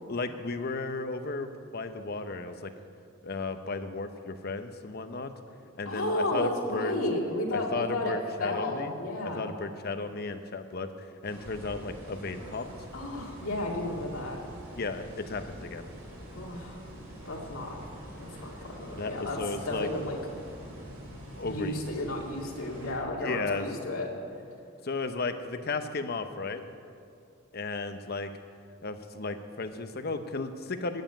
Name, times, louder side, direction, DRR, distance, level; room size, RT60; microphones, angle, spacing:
voice 1, 0.1-2.7 3.2-5.3 5.8-7.0 7.5-8.9 9.2-12.7 14.8-15.9 18.9-19.9 21.3-21.9 23.2-23.7 24.8-26.6 27.5-28.3 28.8-31.0, left 3 dB, 50° left, 8 dB, 0.8 m, -34 dB
voice 2, 5.9-8.1 8.4-9.5 12.9-14.4 16.3-16.8 17.3-17.8 18.2-19.4 19.6-20.2 21.4-24.1, left 1 dB, 90° left, -1 dB, 2.1 m, -33 dB
sound 1, 11.2-22.9, right 1 dB, 85° right, 3.7 m, -45 dB
13.0 x 7.3 x 9.0 m, 2.4 s
head